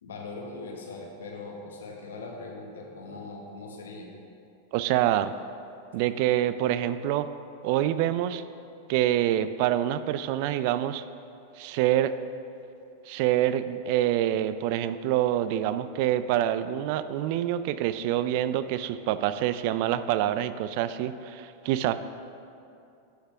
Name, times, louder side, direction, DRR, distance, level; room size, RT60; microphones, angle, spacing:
voice 1, 0.0-4.1, left 3 dB, 90° left, 1 dB, 1.1 m, -40 dB
voice 2, 4.7-5.3 5.9-7.3 7.6-8.4 8.9-11.0 11.6-12.2 13.1-21.9, right 12 dB, 55° right, 12 dB, 0.3 m, -26 dB
9.9 x 3.4 x 5.1 m, 2.6 s
hypercardioid pair, 115°, 0 cm